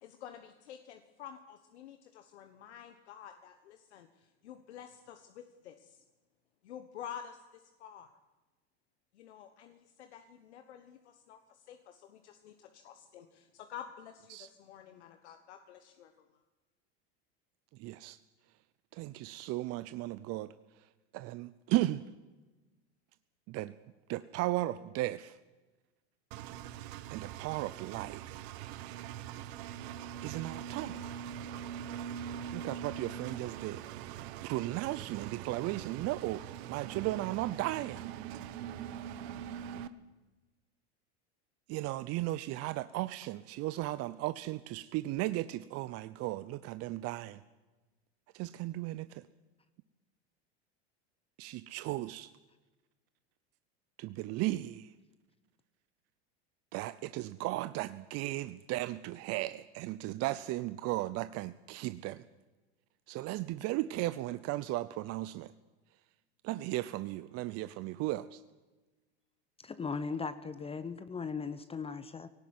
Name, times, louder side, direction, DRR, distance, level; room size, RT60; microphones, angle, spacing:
voice 1, 0.0-6.0 6.6-8.2 9.1-16.4, left 9 dB, 85° left, 7 dB, 1.4 m, -50 dB
voice 2, 17.8-18.2 18.9-20.5 21.1-22.0 23.5-23.7 24.1-25.4 27.1-28.4 30.2-31.0 32.5-33.8 34.4-38.0 41.7-47.4 48.3-49.2 51.4-52.3 54.0-54.9 56.7-62.2 63.1-65.5 66.4-68.4, right 17 dB, 45° right, 13 dB, 0.7 m, -35 dB
Engine, 26.3-39.9, right 9 dB, 70° right, 1.2 m, -43 dB
voice 3, 69.6-72.3, left 5 dB, 15° left, 13 dB, 0.8 m, -38 dB
18.0 x 18.0 x 9.5 m, 1.2 s
supercardioid pair, 110°, 33 cm